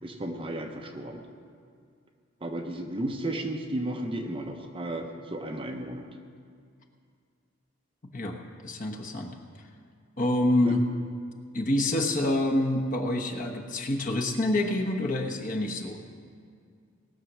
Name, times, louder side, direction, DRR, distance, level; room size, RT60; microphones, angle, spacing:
voice 1, 0.0-1.3 2.4-6.1 10.6-10.8, right 1 dB, 25° right, 3 dB, 0.8 m, -34 dB
voice 2, 8.1-9.3 10.2-10.8 11.5-16.0, left 1 dB, 40° left, 1 dB, 1.2 m, -27 dB
19.0 x 6.8 x 6.2 m, 2.2 s
head